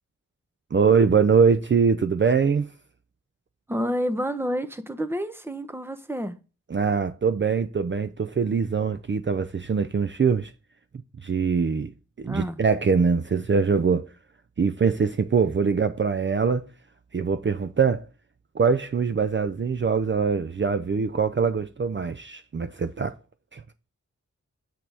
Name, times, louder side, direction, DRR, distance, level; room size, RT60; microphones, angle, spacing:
voice 1, 0.7-2.7 6.7-10.5 11.2-11.9 12.2-14.1 14.6-16.7 17.1-18.1 18.5-23.2 23.5-23.6, right 5 dB, 40° right, 0.5 m, -23 dB
voice 2, 3.7-6.4 12.2-12.6, equal, 10° right, 0.9 m, -29 dB
8.5 x 7.7 x 3.4 m
wide cardioid pair, 85°, 29 cm